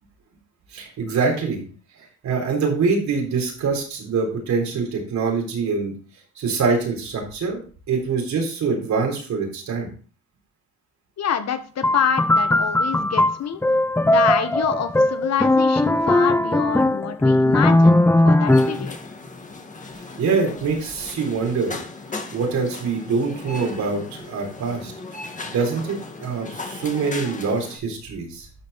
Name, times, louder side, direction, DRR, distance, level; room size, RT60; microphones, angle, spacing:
voice 1, 0.7-1.6 2.2-5.9 6.4-7.6 7.9-9.9 20.2-21.8 22.3-24.9 25.4-28.5, right 4 dB, 70° right, 2 dB, 3.8 m, -24 dB
voice 2, 11.2-13.6 14.1-19.0, left 8 dB, 60° left, 9 dB, 1.3 m, -26 dB
sound 1, 11.8-18.9, left 1 dB, 10° left, 0.5 m, -18 dB
sound 2, 18.5-27.8, left 3 dB, 25° left, 1.8 m, -37 dB
11.5 x 5.0 x 4.1 m, 0.40 s
cardioid pair, 90°, 30 cm